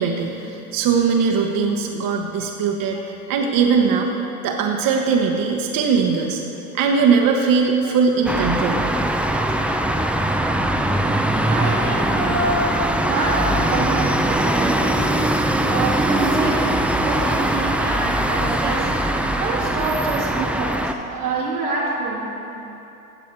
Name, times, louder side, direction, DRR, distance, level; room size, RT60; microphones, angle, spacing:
voice 1, 0.0-3.0 3.3-4.1 4.4-6.4 6.7-8.8, right 5 dB, 50° right, 2 dB, 1.1 m, -20 dB
sound 1, 8.3-20.9, right 1 dB, 5° right, 0.6 m, -21 dB
voice 2, 11.4-12.8 13.1-15.0 15.6-18.9 19.4-22.3, right 3 dB, 90° right, -4 dB, 2.1 m, -26 dB
16.0 x 7.1 x 4.6 m, 2.9 s
hypercardioid pair, 70°, 44 cm